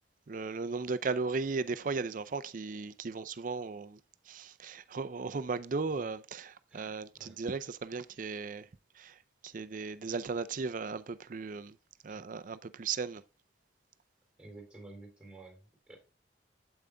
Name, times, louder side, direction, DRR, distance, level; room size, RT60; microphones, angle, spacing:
voice 1, 0.3-4.0 4.3-8.7 9.0-9.2 9.4-11.8 12.0-13.2, right 4 dB, 45° right, 0.5 m, -36 dB
voice 2, 6.7-7.4 12.1-12.2 14.4-16.0, right 2 dB, 5° right, 3.4 m, -52 dB
8.7 x 8.1 x 2.2 m
head